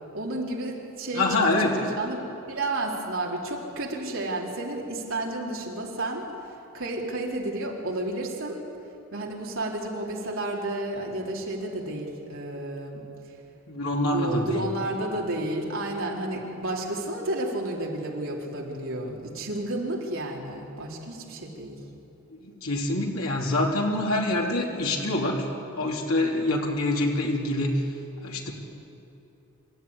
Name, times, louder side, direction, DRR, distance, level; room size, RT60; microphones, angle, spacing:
voice 1, 0.1-2.2 2.5-6.2 6.7-8.6 9.1-13.0 14.1-21.8, right 1 dB, 65° right, -2 dB, 4.0 m, -31 dB
voice 2, 1.1-1.7 13.7-14.7 22.4-25.5 25.7-27.7 28.2-28.5, left 2 dB, 85° left, -1 dB, 3.2 m, -25 dB
27.0 x 14.0 x 9.8 m, 2.9 s
head